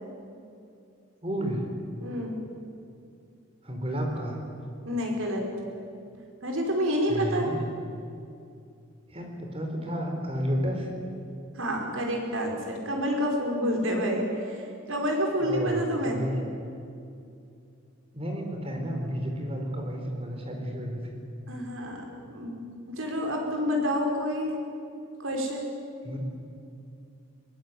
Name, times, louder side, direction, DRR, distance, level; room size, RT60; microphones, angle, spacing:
voice 1, 1.2-1.7 3.6-4.4 7.1-7.6 9.1-10.9 15.4-16.4 18.1-21.2 26.0-26.2, equal, 30° right, 2 dB, 4.3 m, -31 dB
voice 2, 2.0-2.4 4.9-5.4 6.4-7.5 11.6-14.6 14.9-16.2 21.5-22.0 22.3-22.6 23.0-24.6 25.2-25.7, equal, 85° right, 1 dB, 5.2 m, -28 dB
22.0 x 19.5 x 9.4 m, 2.5 s
head